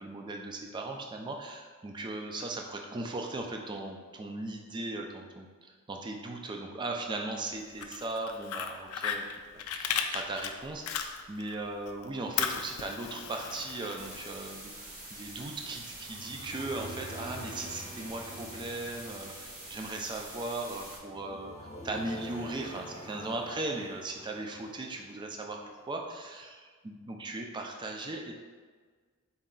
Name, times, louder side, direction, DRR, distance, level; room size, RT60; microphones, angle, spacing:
voice 1, 0.0-9.3 9.7-26.6 26.8-28.3, right 2 dB, 20° right, 2 dB, 0.3 m, -38 dB
Fire, 7.6-11.6 11.9-14.7, left 8 dB, 90° left, 0.3 m, -35 dB
sound 1, 14.0-21.0, right 1 dB, 40° right, 0.8 m, -46 dB
sound 2, 15.6-25.7, equal, 30° left, 0.7 m, -47 dB
4.1 x 2.3 x 3.7 m, 1.5 s
head